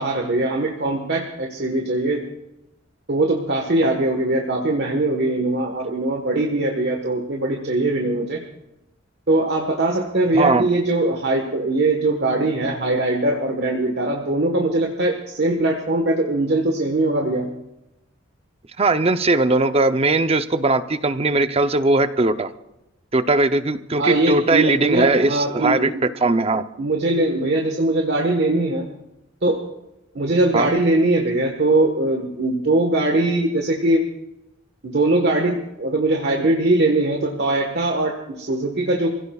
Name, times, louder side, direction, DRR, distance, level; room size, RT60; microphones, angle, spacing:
voice 1, 0.0-2.3 3.1-8.4 9.3-17.5 24.0-26.0 26.8-28.9 29.4-29.6 30.1-34.0 34.8-39.1, right 2 dB, 55° right, 1 dB, 1.4 m, -21 dB
voice 2, 10.3-10.7 18.8-22.5 23.1-26.6 30.5-30.7, right 2 dB, 30° right, 10 dB, 0.7 m, -19 dB
28.5 x 16.5 x 2.4 m, 0.93 s
head